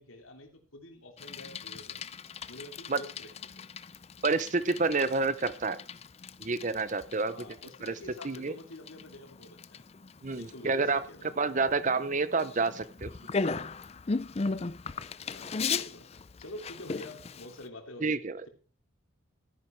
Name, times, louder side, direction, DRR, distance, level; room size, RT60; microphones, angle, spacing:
voice 1, 0.0-2.0 2.5-3.6 7.3-9.8 10.3-11.3 15.3-18.5, left 1 dB, 85° left, 4 dB, 3.1 m, -48 dB
Bicycle, 1.2-17.7, left 4 dB, 30° left, 0.5 m, -38 dB
voice 2, 4.2-5.8 6.4-7.3 7.8-8.0 8.2-8.5 10.2-11.0 11.4-13.1 18.0-18.4, right 3 dB, 35° right, 15 dB, 0.7 m, -28 dB
14.0 x 10.5 x 4.5 m, 0.40 s
head